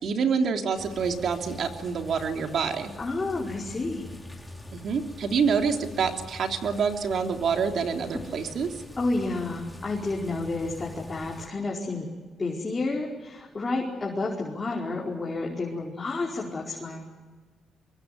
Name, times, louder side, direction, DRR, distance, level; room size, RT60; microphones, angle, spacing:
voice 1, 0.0-2.9 4.7-8.7, right 6 dB, 60° right, 4 dB, 3.2 m, -27 dB
sound 1, 0.8-11.5, left 2 dB, 10° left, 4.6 m, -44 dB
voice 2, 3.0-4.1 9.0-12.1 12.4-17.0, left 3 dB, 25° left, -2 dB, 4.8 m, -30 dB
23.5 x 23.5 x 9.5 m, 1.4 s
cardioid pair, 90°, 0 cm